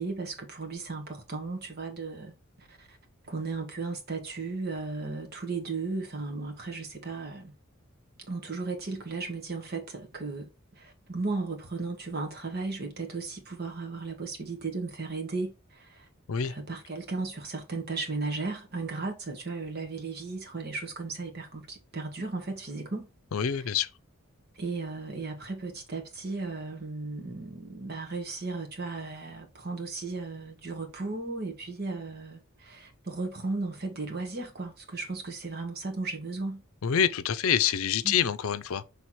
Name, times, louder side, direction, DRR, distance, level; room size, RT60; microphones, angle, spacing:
voice 1, 0.0-2.3 2.6-3.0 3.2-7.5 8.3-10.5 10.8-16.1 16.4-23.1 24.6-36.6 38.0-38.3, right 3 dB, 50° right, 1.5 m, -35 dB
voice 2, 23.3-23.9 36.8-38.8, left 8 dB, 85° left, 0.5 m, -26 dB
5.9 x 3.4 x 4.6 m
head